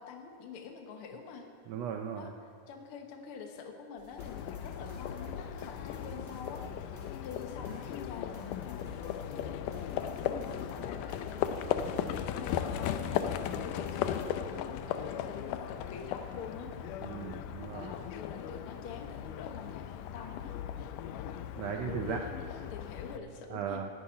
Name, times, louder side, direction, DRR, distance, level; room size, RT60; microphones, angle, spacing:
voice 1, 0.0-1.5 2.2-2.3 2.7-6.6 7.2-10.0 10.6-16.7 17.7-20.6 21.9-23.8, left 5 dB, 55° left, 3 dB, 1.8 m, -46 dB
voice 2, 1.7-2.3 17.0-17.9 21.6-22.2 23.5-23.9, right 8 dB, 85° right, 4 dB, 1.4 m, -37 dB
sound 1, 4.0-14.2, right 3 dB, 15° right, 1.8 m, -53 dB
Livestock farm animals working animals, 4.2-23.2, left 9 dB, 80° left, 2.2 m, -37 dB
9.9 x 9.5 x 9.6 m, 2.3 s
omnidirectional pair, 3.7 m